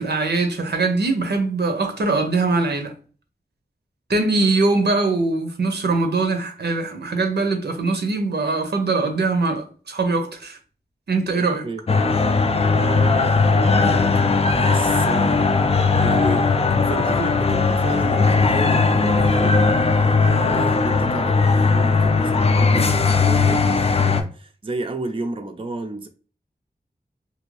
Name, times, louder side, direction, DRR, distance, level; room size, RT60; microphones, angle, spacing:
voice 1, 0.0-2.9 4.1-10.6 11.1-11.7, right 3 dB, 85° right, 0.6 m, -22 dB
voice 2, 11.4-11.8 12.7-14.2 14.5-15.5 16.0-16.5 16.9-26.1, right 3 dB, 35° right, 0.4 m, -32 dB
sound 1, 11.9-24.2, left 4 dB, 40° left, 0.4 m, -18 dB
2.7 x 2.5 x 3.1 m
wide cardioid pair, 70°, 17 cm